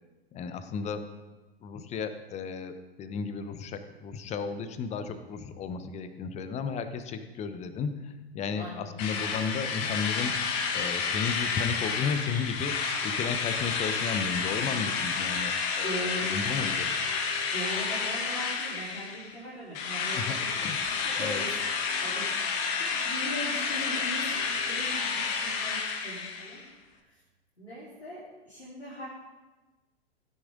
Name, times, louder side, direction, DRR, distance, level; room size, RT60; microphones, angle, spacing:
voice 1, 0.3-1.1 1.6-10.4 10.7-16.9 20.1-20.4 20.6-20.8 21.2-21.4, left 5 dB, 20° left, 10 dB, 0.9 m, -34 dB
voice 2, 8.6-8.9 15.8-16.2 17.5-21.5 22.0-26.6 27.6-29.1, equal, 90° left, -9 dB, 4.2 m, -40 dB
Drill, 9.0-19.4 19.7-26.6, left 5 dB, 40° left, 1.5 m, -30 dB
16.0 x 10.5 x 3.8 m, 1.1 s
figure-of-eight pair, 100°, 32 cm